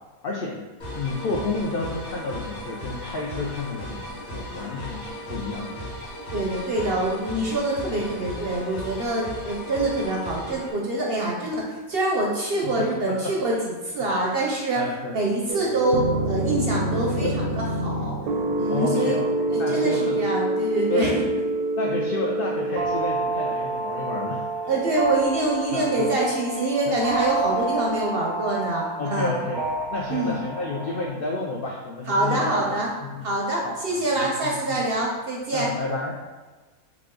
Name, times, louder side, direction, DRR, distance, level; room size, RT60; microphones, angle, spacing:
voice 1, 0.2-0.6 0.9-4.0 4.3-5.8 6.8-7.0 7.9-8.0 12.6-13.6 14.8-15.1 17.2-17.3 18.7-19.3 19.6-20.2 20.9-21.2 21.8-25.0 25.7-26.0 26.9-27.0 29.0-29.6 29.9-32.6 33.0-33.3 33.6-34.8 35.5-36.1, left 3 dB, 70° left, -2 dB, 0.5 m, -30 dB
sound 1, 0.8-10.7, equal, 90° left, 1.9 m, -36 dB
voice 2, 6.3-14.8 15.1-17.3 17.6-18.1 18.5-19.2 19.5-21.2 24.7-29.4 30.1-30.3 32.1-32.9 33.2-35.7, right 2 dB, 55° right, -2 dB, 0.7 m, -25 dB
sound 2, 15.5-31.0, right 2 dB, 80° right, 1.0 m, -27 dB
5.0 x 2.3 x 3.7 m, 1.3 s
omnidirectional pair, 1.5 m